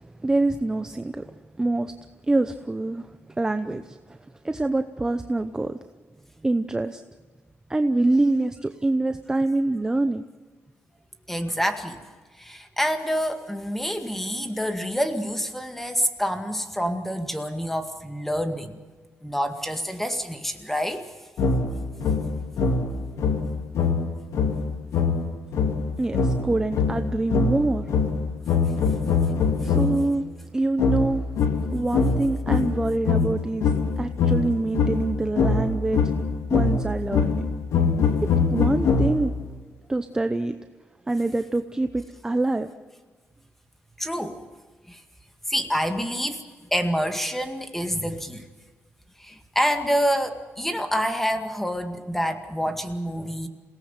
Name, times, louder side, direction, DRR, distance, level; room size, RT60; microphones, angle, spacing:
voice 1, 0.2-1.2 1.6-1.9 2.3-3.0 3.4-3.8 4.4-5.7 6.4-7.0 7.7-10.2 26.0-27.9 29.6-30.2 30.5-31.2 31.7-33.7 34.0-36.0 36.5-37.4 38.5-39.3 39.9-40.5 41.1-42.7, right 2 dB, 15° right, 8 dB, 0.8 m, -25 dB
voice 2, 11.3-12.0 12.4-18.7 19.2-21.0 38.6-38.7 44.0-44.4 44.9-45.0 45.5-46.4 46.7-48.5 49.2-53.5, equal, 5° left, 6 dB, 2.0 m, -27 dB
sound 1, 21.4-30.1 30.8-39.4, left 4 dB, 85° left, 2.3 m, -23 dB
28.0 x 18.5 x 7.4 m, 1.4 s
cardioid pair, 130°, 5 cm